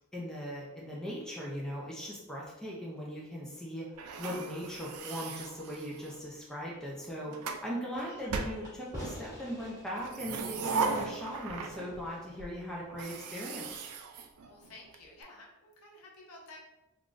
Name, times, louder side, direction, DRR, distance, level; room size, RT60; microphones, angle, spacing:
voice 1, 0.1-3.9 4.2-13.8, equal, 5° left, -5 dB, 0.4 m, -39 dB
sound 1, 4.0-6.3 7.0-7.7 8.3-9.2 9.9-12.1 12.4-12.5 12.9-15.0, right 4 dB, 85° right, 0.3 m, -38 dB
Fireworks, 7.9-13.2, equal, 15° right, 1.1 m, -49 dB
voice 2, 8.0-8.3 14.4-16.6, left 2 dB, 85° left, -2 dB, 0.7 m, -52 dB
3.5 x 2.4 x 2.5 m, 1.0 s
head